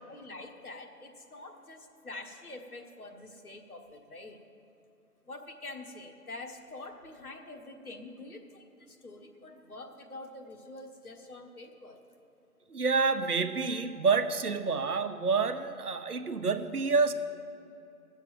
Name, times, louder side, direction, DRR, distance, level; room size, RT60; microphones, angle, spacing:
voice 1, 0.1-4.4 5.2-12.0, left 2 dB, 70° left, 3 dB, 1.6 m, -46 dB
voice 2, 12.7-17.1, right 4 dB, 75° right, 9 dB, 0.9 m, -28 dB
13.0 x 7.4 x 7.4 m, 2.8 s
figure-of-eight pair, 170°, 46 cm